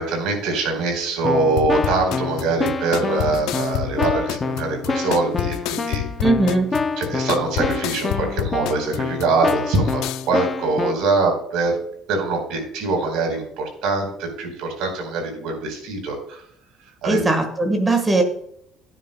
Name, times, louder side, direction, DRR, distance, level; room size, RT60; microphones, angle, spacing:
voice 1, 0.0-6.0 7.0-11.8 12.1-16.4 17.0-17.2, right 3 dB, 70° right, 3 dB, 4.2 m, -23 dB
Keyboard (musical), 0.7-0.9 1.2-10.9, left 4 dB, 20° left, 0.6 m, -27 dB
sound 1, 1.6-10.3, left 12 dB, 80° left, 0.5 m, -28 dB
voice 2, 6.2-6.7 17.0-18.2, right 2 dB, 15° right, 5 dB, 1.4 m, -19 dB
17.5 x 9.4 x 2.2 m, 0.70 s
cardioid pair, 175°, 0 cm